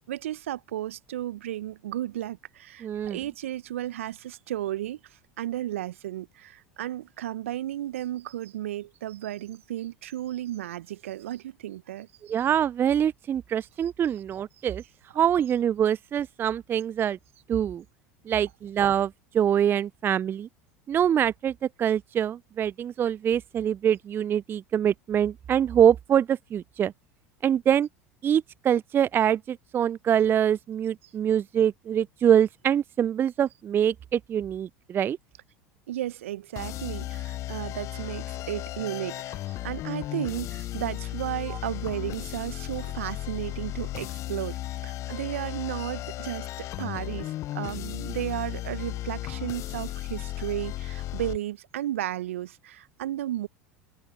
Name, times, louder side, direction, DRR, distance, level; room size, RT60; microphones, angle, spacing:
voice 1, 0.1-12.1 35.9-53.5, right 13 dB, 70° right, 0.9 m, -34 dB
voice 2, 2.8-3.2 12.3-14.8 15.1-17.2 17.5-17.8 18.3-20.5 20.9-26.9 27.4-27.9 28.2-35.2 41.5-41.6, right 9 dB, 30° right, 0.4 m, -24 dB
sound 1, 36.6-51.4, left 15 dB, 45° left, 0.6 m, -35 dB
open air
figure-of-eight pair, 75°, 7 cm